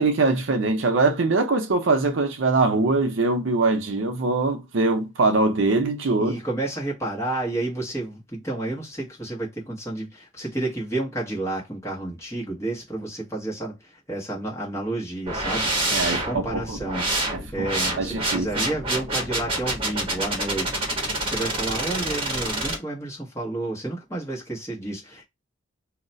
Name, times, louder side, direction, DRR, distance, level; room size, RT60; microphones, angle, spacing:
voice 1, 0.0-6.4 15.9-16.8 17.6-17.7 18.0-18.5, right 3 dB, 65° right, 0.6 m, -22 dB
voice 2, 6.2-17.0 17.5-25.2, right 2 dB, 15° left, 0.9 m, -31 dB
sound 1, 15.3-22.8, right 2 dB, 25° right, 1.0 m, -27 dB
2.3 x 2.1 x 3.8 m
head